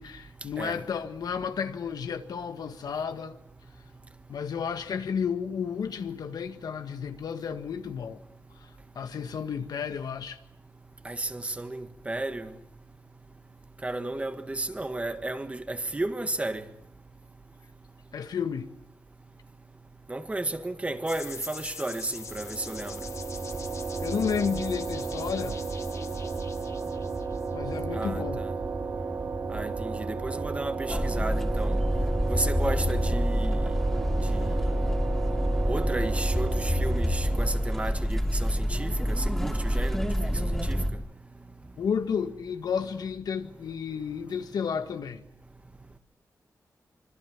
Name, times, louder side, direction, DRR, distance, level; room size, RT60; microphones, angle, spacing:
voice 1, 0.0-3.4 4.3-8.2 9.0-10.4 18.1-18.7 24.0-25.6 27.5-28.4 41.8-45.2, left 7 dB, 90° left, 1.9 m, -32 dB
voice 2, 11.0-12.5 13.8-16.6 20.1-23.0 27.9-28.2 29.5-31.8 32.3-33.7 34.3-34.6 35.7-40.1 40.6-40.8, right 2 dB, 20° right, 1.6 m, -33 dB
sound 1, 21.1-27.8, left 5 dB, 50° left, 1.6 m, -44 dB
sound 2, 22.1-37.9, right 4 dB, 55° right, 4.5 m, -33 dB
sound 3, 30.9-40.9, equal, 5° left, 2.9 m, -27 dB
26.0 x 25.0 x 7.4 m
wide cardioid pair, 135°, 7 cm